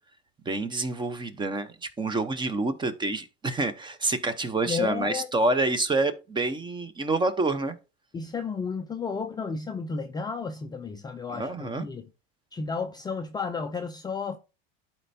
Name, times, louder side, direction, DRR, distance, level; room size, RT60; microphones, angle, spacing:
voice 1, 0.4-7.7 11.3-11.8, right 2 dB, 15° right, 0.9 m, -27 dB
voice 2, 4.7-5.3 8.1-12.1 12.5-14.4, left 5 dB, 15° left, 0.5 m, -32 dB
12.0 x 4.4 x 2.7 m
supercardioid pair, 125°, 30 cm